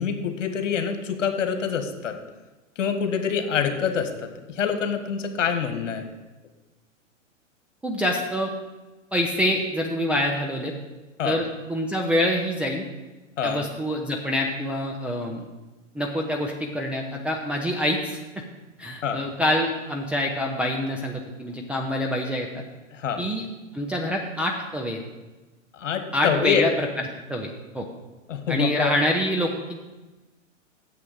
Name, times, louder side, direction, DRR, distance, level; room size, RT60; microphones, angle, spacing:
voice 1, 0.0-2.2 2.7-6.1 11.2-11.4 13.4-13.7 19.0-19.2 22.9-23.2 25.7-26.7 28.3-28.9, left 7 dB, 70° left, 7 dB, 1.5 m, -26 dB
voice 2, 7.8-8.5 9.1-10.7 11.2-12.9 13.4-15.5 15.9-18.4 18.8-22.5 23.2-23.4 23.7-25.0 26.1-26.7 27.3-27.9 28.5-29.8, left 1 dB, 5° right, -1 dB, 0.3 m, -26 dB
7.2 x 6.0 x 7.8 m, 1.1 s
hypercardioid pair, 110°, 39 cm